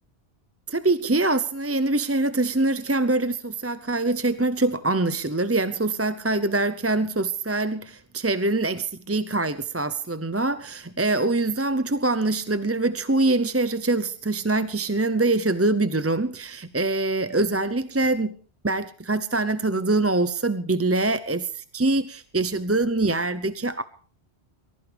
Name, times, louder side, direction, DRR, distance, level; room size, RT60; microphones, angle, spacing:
voice 1, 0.7-18.3 18.6-23.8, right 2 dB, 15° right, 12 dB, 0.6 m, -24 dB
23.0 x 15.0 x 3.3 m, 0.42 s
omnidirectional pair, 1.1 m